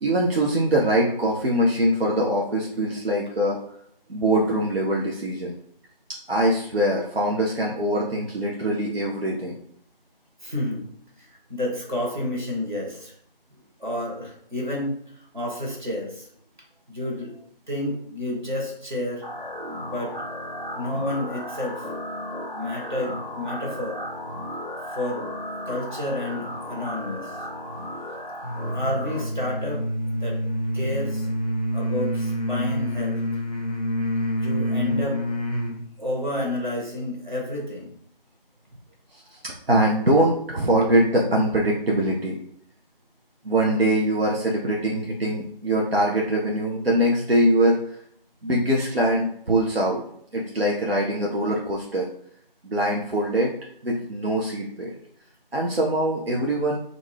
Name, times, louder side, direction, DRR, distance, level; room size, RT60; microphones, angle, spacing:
voice 1, 0.0-3.6 4.1-5.5 6.3-9.6 39.1-42.4 43.4-47.8 48.4-50.0 50.3-52.1 52.6-53.5 53.8-54.9 55.5-56.8, right 1 dB, 85° right, -3 dB, 0.7 m, -23 dB
voice 2, 10.4-10.8 11.2-13.1 13.8-15.0 15.3-16.3 16.9-17.3 17.7-19.2 19.8-20.2 20.8-21.9 22.5-24.0 24.9-25.2 25.7-27.4 28.6-29.8 30.2-30.4 30.7-31.3 31.7-33.3 34.3-35.2 36.0-37.9, left 1 dB, 55° right, -2 dB, 1.1 m, -30 dB
sound 1, 19.2-29.2, left 1 dB, 70° right, 1.2 m, -35 dB
sound 2, 28.4-35.8, equal, 40° left, 0.5 m, -27 dB
2.4 x 2.3 x 3.3 m, 0.67 s
figure-of-eight pair, 175°, 29 cm